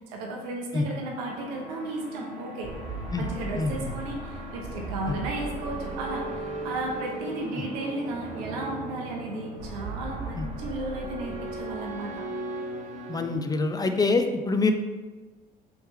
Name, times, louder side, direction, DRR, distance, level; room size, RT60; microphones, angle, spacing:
voice 1, 0.1-2.7 3.2-12.3, right 2 dB, 90° right, 0 dB, 0.6 m, -34 dB
sound 1, 1.2-13.4, right 2 dB, 40° right, 1.0 m, -37 dB
voice 2, 3.6-3.9 5.1-5.2 10.4-10.5 13.1-14.7, left 3 dB, 20° left, 6 dB, 0.3 m, -25 dB
3.1 x 3.0 x 3.4 m, 1.3 s
supercardioid pair, 65°, 19 cm